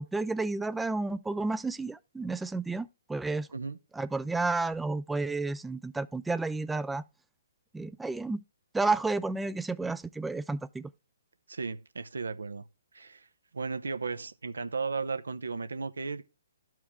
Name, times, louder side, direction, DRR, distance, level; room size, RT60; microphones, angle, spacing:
voice 1, 0.0-3.5 3.9-7.0 7.7-8.4 8.7-10.9, right 3 dB, 5° right, 0.3 m, -31 dB
voice 2, 11.5-12.7 12.9-13.2 13.5-16.2, right 4 dB, 75° right, 0.6 m, -35 dB
12.0 x 4.6 x 3.5 m
figure-of-eight pair, 130°, 0 cm